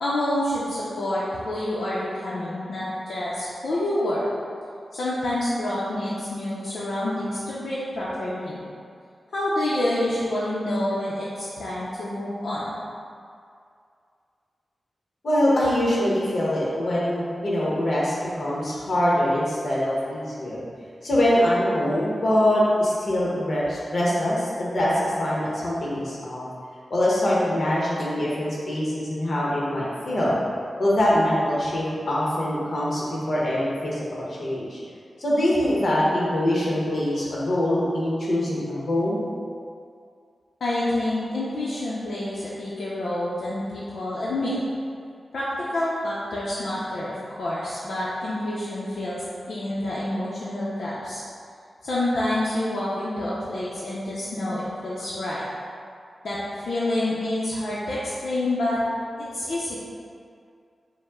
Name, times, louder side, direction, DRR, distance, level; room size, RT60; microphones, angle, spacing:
voice 1, 0.0-4.3 4.9-8.6 9.3-12.7 40.6-44.6 45.3-51.2 51.8-55.4 56.2-58.8 59.2-59.8, left 1 dB, 80° left, -8 dB, 0.6 m, -28 dB
voice 2, 15.2-20.7 21.0-26.4 26.9-30.4 30.8-34.8 35.2-39.2, left 1 dB, 55° left, -6 dB, 1.0 m, -23 dB
5.2 x 2.1 x 3.6 m, 2.3 s
wide cardioid pair, 105°, 0 cm